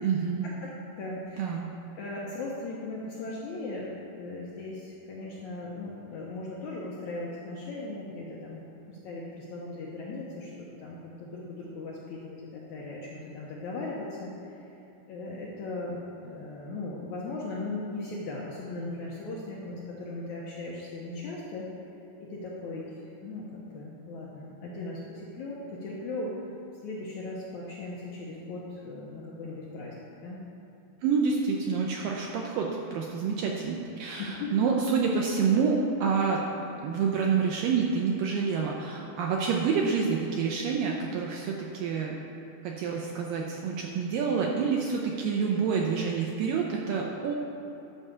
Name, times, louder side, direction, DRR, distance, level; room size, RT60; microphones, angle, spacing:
voice 1, 0.0-0.5 1.4-1.7 31.0-36.4 36.8-42.2 42.6-47.3, right 5 dB, 80° right, -1 dB, 2.1 m, -28 dB
voice 2, 0.6-1.4 1.9-3.9 4.2-8.6 8.9-14.3 15.1-21.7 22.2-22.8 23.2-23.5 23.7-26.3 26.8-29.9 30.2-30.4 34.1-34.5, left 2 dB, 70° left, -5 dB, 1.8 m, -38 dB
11.0 x 4.8 x 6.8 m, 2.9 s
omnidirectional pair, 4.6 m